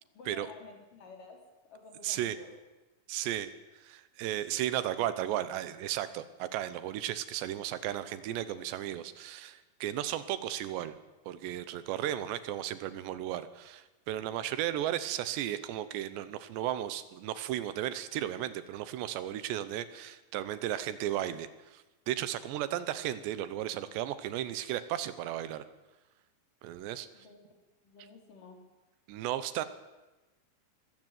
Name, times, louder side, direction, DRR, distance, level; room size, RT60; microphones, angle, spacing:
voice 1, 0.1-1.4 1.7-2.5 27.1-27.5 27.8-28.6, left 4 dB, 50° left, 2 dB, 5.1 m, -51 dB
voice 2, 2.0-2.4 3.1-11.0 11.3-25.6 26.6-27.1 29.1-29.7, right 12 dB, 75° right, 14 dB, 3.1 m, -35 dB
23.0 x 14.0 x 9.1 m, 1.1 s
omnidirectional pair, 5.2 m